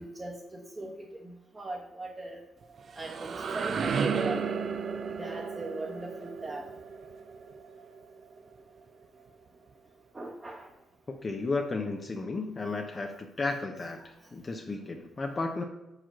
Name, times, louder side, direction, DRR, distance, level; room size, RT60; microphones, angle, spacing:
voice 1, 0.0-2.4 2.9-4.5 5.1-6.7 10.1-10.7, right 2 dB, 25° right, -2 dB, 1.2 m, -40 dB
sound 1, 2.6-8.4, right 5 dB, 55° right, 0.6 m, -33 dB
voice 2, 11.2-15.6, left 3 dB, 35° left, 3 dB, 0.7 m, -33 dB
4.9 x 4.4 x 5.9 m, 0.98 s
supercardioid pair, 65°, 0 cm